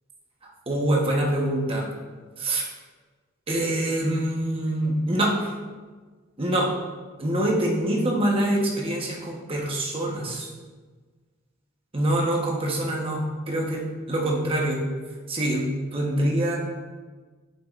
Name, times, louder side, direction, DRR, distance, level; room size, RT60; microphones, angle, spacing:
voice 1, 0.7-1.9 2.4-2.7 3.5-5.5 6.4-6.7 7.2-10.5 11.9-14.8 15.3-16.6, right 1 dB, 25° right, -2 dB, 1.1 m, -25 dB
8.1 x 7.4 x 2.5 m, 1.4 s
head